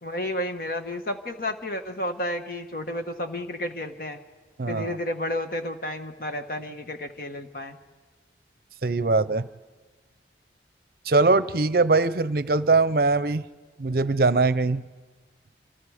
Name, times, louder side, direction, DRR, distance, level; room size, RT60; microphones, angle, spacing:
voice 1, 0.0-4.2 4.7-7.8, left 1 dB, 50° left, 7 dB, 1.5 m, -31 dB
voice 2, 4.6-5.0 8.8-9.5 11.1-13.4 13.8-14.8, right 3 dB, 55° right, 15 dB, 0.6 m, -21 dB
30.0 x 26.5 x 5.0 m, 1.4 s
head